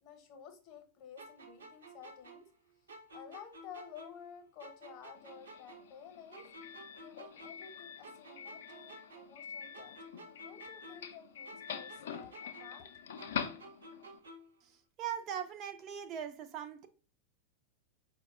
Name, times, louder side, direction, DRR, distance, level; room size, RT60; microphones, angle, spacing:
voice 1, 0.0-2.5 3.1-6.5 7.0-10.0 10.4-13.0, left 8 dB, 40° left, 0.8 m, -53 dB
sound 1, 1.2-4.3 4.6-7.8 8.0-11.2 11.5-14.6, right 1 dB, 75° right, 0.6 m, -53 dB
Doorbell, 5.2-14.2, left 7 dB, 60° left, 0.3 m, -45 dB
voice 2, 14.6-16.9, right 9 dB, 35° right, 0.3 m, -40 dB
4.6 x 2.1 x 3.5 m
figure-of-eight pair, 90°, 0 cm